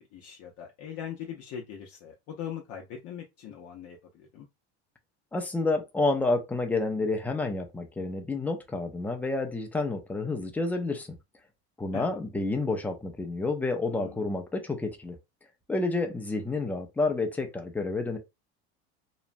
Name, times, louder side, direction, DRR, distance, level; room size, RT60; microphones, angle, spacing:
voice 1, 0.1-4.5 11.9-12.2 13.9-14.3, left 8 dB, 50° left, 0.6 m, -41 dB
voice 2, 5.3-11.1 11.8-15.2 15.7-18.2, left 3 dB, 5° left, 0.4 m, -29 dB
2.9 x 2.1 x 2.5 m
supercardioid pair, 130°, 32 cm